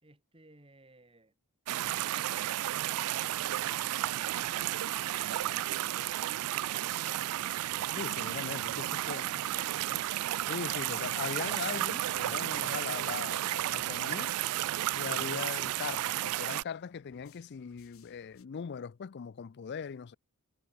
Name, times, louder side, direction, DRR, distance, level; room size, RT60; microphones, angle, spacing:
voice 1, 0.0-1.3, right 2 dB, 25° right, 3.1 m, -60 dB
sound 1, 1.7-16.6, right 14 dB, 85° right, 0.3 m, -33 dB
sound 2, 3.2-18.5, left 6 dB, 70° left, 4.1 m, -67 dB
Singing / Musical instrument, 4.2-13.9, equal, ahead, 3.8 m, -70 dB
voice 2, 7.9-9.2 10.5-14.4 14.9-20.2, left 6 dB, 50° left, 0.4 m, -40 dB
head